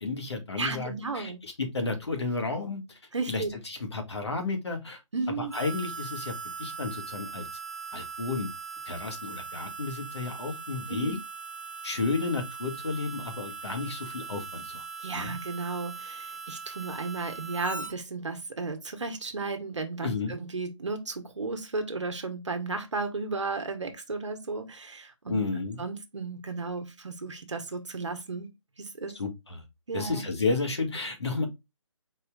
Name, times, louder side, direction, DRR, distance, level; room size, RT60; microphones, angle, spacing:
voice 1, 0.0-3.0 3.3-5.0 5.4-7.5 7.9-8.5 8.8-11.2 11.8-14.8 15.1-15.4 20.0-20.3 25.3-25.8 29.2-29.6 29.9-31.5, left 3 dB, 55° left, 1.8 m, -32 dB
voice 2, 0.6-1.4 3.1-3.5 5.1-5.5 10.9-11.2 15.0-25.4 25.8-28.5 28.8-29.1 29.9-30.2, right 3 dB, 65° right, 1.2 m, -34 dB
Harmonica, 5.5-17.9, right 5 dB, 30° right, 1.1 m, -40 dB
4.9 x 4.3 x 2.4 m
hypercardioid pair, 180°, 17 cm